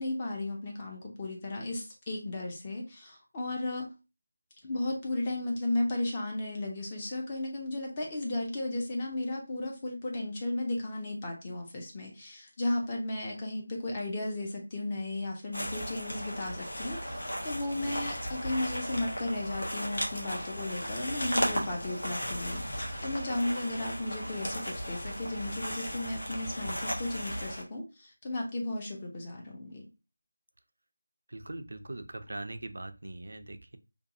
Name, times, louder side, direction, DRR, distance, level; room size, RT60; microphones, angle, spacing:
voice 1, 0.0-3.9 4.6-29.9, left 2 dB, 25° left, 0 dB, 0.5 m, -34 dB
sound 1, 15.5-27.6, equal, 75° left, 1.0 m, -36 dB
voice 2, 31.3-33.8, right 2 dB, 65° right, 9 dB, 0.4 m, -41 dB
2.6 x 2.3 x 2.6 m, 0.29 s
figure-of-eight pair, 170°, 0 cm